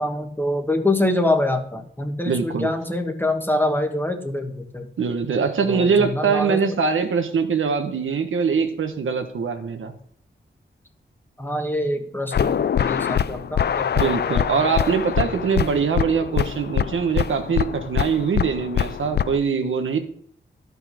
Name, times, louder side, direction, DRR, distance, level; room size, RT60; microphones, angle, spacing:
voice 1, 0.0-4.9 5.6-6.7 11.4-14.9 15.2-15.3, left 1 dB, 10° left, 5 dB, 1.3 m, -25 dB
voice 2, 2.3-2.7 5.0-9.9 14.0-20.0, right 5 dB, 85° right, 6 dB, 1.2 m, -23 dB
sound 1, 12.3-19.4, left 8 dB, 55° left, 0.4 m, -24 dB
11.5 x 5.5 x 6.1 m, 0.64 s
wide cardioid pair, 95°, 20 cm